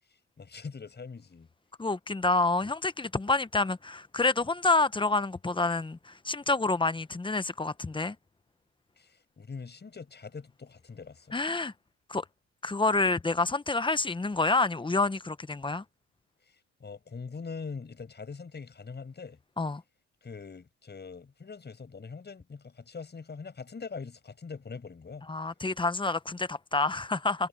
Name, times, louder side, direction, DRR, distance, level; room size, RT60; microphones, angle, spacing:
voice 1, 0.4-1.5 9.0-11.4 16.8-19.4 20.2-25.3, left 5 dB, 35° left, 7.7 m, -42 dB
voice 2, 1.8-8.2 11.3-11.7 12.1-12.2 12.6-15.8 19.6-19.8 25.3-27.5, left 3 dB, 15° left, 0.9 m, -28 dB
cardioid pair, 90°, 30 cm